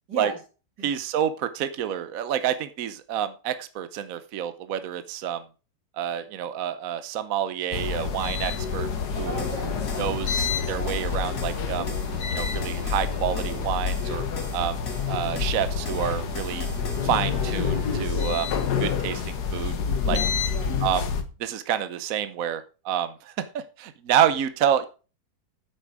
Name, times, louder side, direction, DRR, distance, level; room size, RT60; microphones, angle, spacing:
voice 1, 0.1-0.4 0.8-0.9 9.2-10.1 20.0-20.9, right 3 dB, 80° right, 3.1 m, -36 dB
voice 2, 0.8-5.4 6.0-8.9 9.2-9.3 10.0-11.9 12.3-14.2 14.5-14.8 15.1-16.7 17.0-18.5 18.8-19.8 20.1-20.2 20.8-21.0 21.4-24.9, right 9 dB, 60° right, 1.1 m, -28 dB
sound 1, 7.7-21.2, left 6 dB, 70° left, 1.8 m, -28 dB
sound 2, 8.4-18.1, right 2 dB, 45° right, 2.5 m, -43 dB
sound 3, 9.1-17.1, left 2 dB, 50° left, 3.1 m, -40 dB
8.8 x 8.7 x 4.7 m
omnidirectional pair, 1.8 m